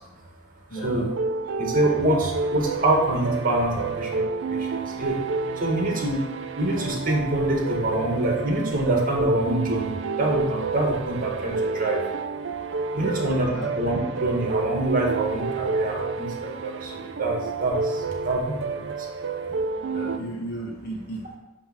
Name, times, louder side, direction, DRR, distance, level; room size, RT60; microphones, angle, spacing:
voice 1, 0.7-1.1 13.0-13.8 19.9-21.4, right 1 dB, 55° left, -3 dB, 1.2 m, -35 dB
sound 1, 0.8-20.2, right 4 dB, 65° right, 0.5 m, -30 dB
voice 2, 1.6-4.2 4.5-5.2 5.6-6.2 6.6-12.0 12.9-13.5 13.7-19.1 19.5-19.6, right 1 dB, 45° right, -1 dB, 1.8 m, -25 dB
9.0 x 3.2 x 6.0 m, 0.97 s
head